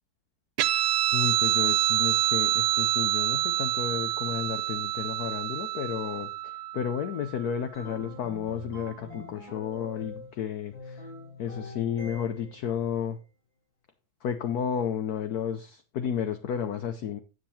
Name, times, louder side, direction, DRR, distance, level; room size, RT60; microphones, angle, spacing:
Guitar, 0.6-7.5, right 15 dB, 85° right, 1.4 m, -27 dB
voice 1, 1.1-6.3 6.7-10.9 11.4-13.2 14.2-17.2, left 8 dB, 65° left, 8 dB, 1.1 m, -32 dB
sound 1, 7.7-10.4 10.7-12.6, left 2 dB, 80° left, 4.8 m, -43 dB
8.7 x 7.4 x 4.3 m, 0.31 s
omnidirectional pair, 2.1 m